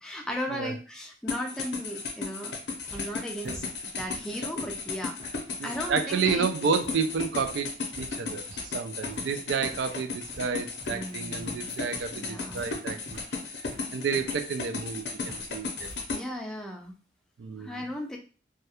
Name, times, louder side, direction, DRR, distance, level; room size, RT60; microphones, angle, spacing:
voice 1, 0.0-2.5 2.9-3.7 4.0-5.2 5.6-6.5 10.9-11.7 12.1-12.7 16.1-16.9 17.6-18.2, equal, 5° left, 0 dB, 0.3 m, -36 dB
sound 1, 1.3-16.2, left 4 dB, 75° left, 0.5 m, -35 dB
sound 2, 2.7-16.1, equal, 25° right, 0.8 m, -50 dB
voice 2, 5.6-13.2 13.9-15.9 16.2-16.3 17.4-17.9, right 5 dB, 80° right, 8 dB, 0.3 m, -31 dB
2.2 x 2.1 x 2.8 m, 0.37 s
head